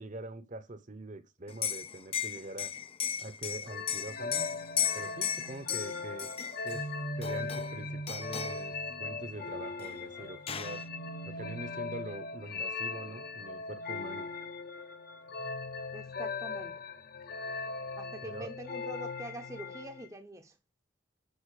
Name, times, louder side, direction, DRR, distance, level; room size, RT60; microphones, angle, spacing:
voice 1, 0.0-2.7 3.2-4.4 4.9-6.3 6.6-6.9 7.2-10.8 11.2-14.3 18.2-18.5, right 2 dB, 40° right, 1.0 m, -44 dB
Liquid, 1.5-6.8 7.2-7.8 8.1-8.6 9.8-9.9 10.2-10.8, left 9 dB, 30° left, 0.5 m, -35 dB
sound 1, 3.7-20.1, left 3 dB, 50° left, 1.0 m, -39 dB
voice 2, 15.9-16.7 18.0-20.6, right 1 dB, 15° right, 0.9 m, -44 dB
8.1 x 5.8 x 6.6 m
head